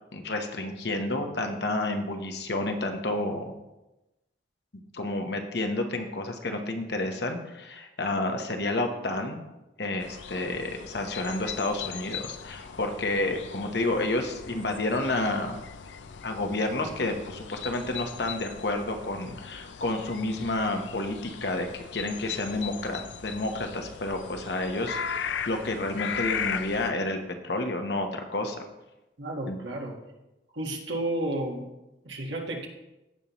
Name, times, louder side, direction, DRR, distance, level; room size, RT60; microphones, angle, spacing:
voice 1, 0.1-3.5 4.9-9.4 9.8-15.6 16.2-27.2 27.4-28.6 29.5-29.6, left 2 dB, 60° left, 4 dB, 1.0 m, -30 dB
sound 1, 10.0-26.9, left 7 dB, 80° left, 0.5 m, -38 dB
voice 2, 29.2-30.0 30.5-31.7 32.0-32.7, right 1 dB, 80° right, 0 dB, 1.6 m, -32 dB
15.5 x 5.5 x 3.1 m, 0.98 s
head